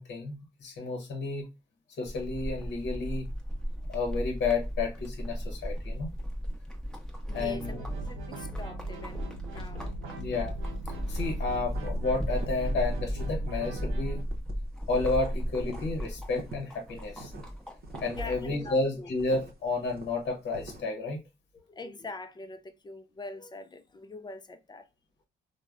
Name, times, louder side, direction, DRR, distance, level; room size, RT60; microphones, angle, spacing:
voice 1, 0.0-1.5 2.0-3.3 3.9-6.1 7.3-7.8 10.2-10.5 11.1-14.2 14.9-17.3 18.0-21.2, left 3 dB, 60° left, 0.9 m, -31 dB
sound 1, 2.1-18.5, equal, 5° left, 0.8 m, -36 dB
voice 2, 7.3-9.9 18.1-19.1 21.7-24.9, left 2 dB, 20° left, 0.4 m, -43 dB
sound 2, 7.3-14.2, right 2 dB, 90° right, 0.6 m, -39 dB
sound 3, 11.7-13.2 13.5-15.3 15.6-20.8, right 1 dB, 50° right, 0.7 m, -45 dB
3.2 x 2.1 x 2.3 m
cardioid pair, 90°, 20 cm